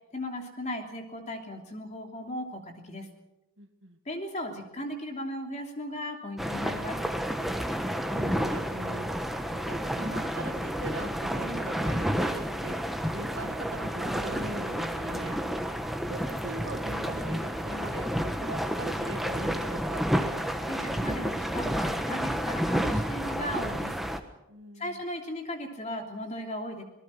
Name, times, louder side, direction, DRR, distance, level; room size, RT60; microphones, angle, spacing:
voice 1, 0.1-3.1 4.0-7.0 20.7-24.0 24.8-26.8, left 1 dB, 30° left, 3 dB, 3.1 m, -37 dB
voice 2, 3.6-4.0 7.7-9.1 9.5-12.8 13.1-15.4 16.1-20.1 24.5-25.0, right 1 dB, 55° right, 7 dB, 1.9 m, -41 dB
sound 1, 6.4-24.2, equal, ahead, 1.2 m, -30 dB
26.5 x 18.5 x 6.0 m, 0.92 s
head